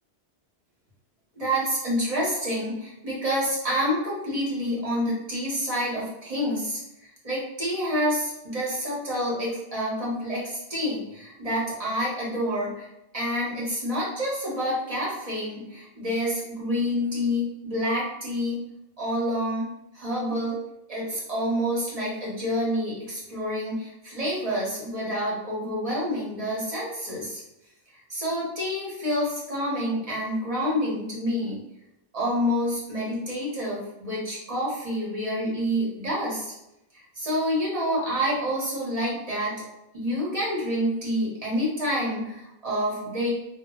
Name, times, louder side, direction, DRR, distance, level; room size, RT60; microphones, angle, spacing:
voice 1, 1.3-12.9 13.1-18.6 19.0-19.7 19.9-20.6 20.9-27.4 28.1-31.6 32.1-36.5 37.2-39.6 39.9-43.3, equal, 40° right, -5 dB, 0.8 m, -28 dB
2.2 x 2.0 x 3.6 m, 0.86 s
omnidirectional pair, 1.1 m